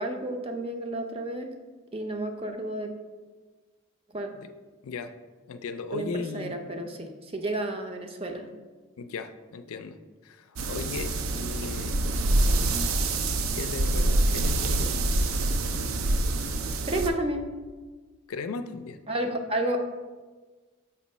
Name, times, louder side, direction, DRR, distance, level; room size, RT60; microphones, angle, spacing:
voice 1, 0.0-1.5 1.9-2.9 4.1-4.3 5.9-8.4 16.8-17.5 19.1-19.8, right 1 dB, 25° right, 5 dB, 0.5 m, -31 dB
voice 2, 5.5-6.6 9.0-10.0 10.2-12.0 13.4-15.1 18.3-19.0, left 5 dB, 90° left, 9 dB, 0.4 m, -37 dB
sound 1, 10.6-17.1, right 2 dB, 75° right, 0.5 m, -26 dB
6.5 x 3.0 x 5.4 m, 1.4 s
head